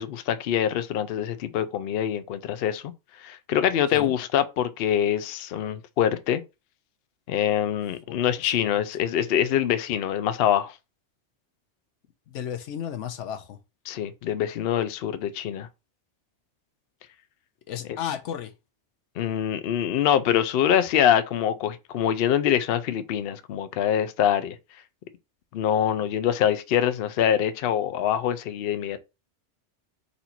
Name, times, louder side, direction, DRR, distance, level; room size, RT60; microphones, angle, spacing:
voice 1, 0.0-2.9 3.2-6.4 7.3-10.7 13.9-15.7 19.2-24.6 25.5-29.0, left 10 dB, 65° left, 0.7 m, -24 dB
voice 2, 8.4-8.7 12.3-13.6 17.7-18.5, left 9 dB, 90° left, 1.0 m, -33 dB
4.2 x 2.7 x 4.2 m
omnidirectional pair, 1.2 m